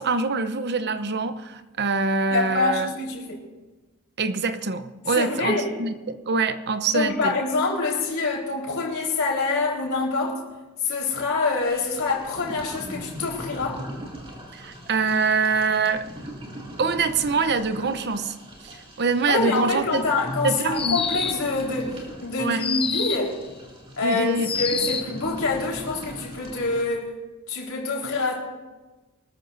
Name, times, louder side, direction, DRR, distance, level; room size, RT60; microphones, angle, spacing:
voice 1, 0.0-2.9 4.2-7.4 14.5-16.1 16.8-18.3 18.6-20.1 20.4-21.0 22.4-22.6 24.0-24.5, right 4 dB, 50° right, 10 dB, 0.8 m, -24 dB
voice 2, 2.3-3.4 5.1-5.7 6.9-10.4 10.8-13.8 19.3-23.3 24.0-27.1 27.5-28.4, left 3 dB, 70° left, -2 dB, 4.3 m, -26 dB
sound 1, 11.6-26.8, equal, 25° right, 2.7 m, -39 dB
sound 2, 20.7-21.5 22.6-23.3 24.4-25.2, left 6 dB, 25° left, 0.8 m, -27 dB
24.5 x 13.5 x 2.7 m, 1.2 s
head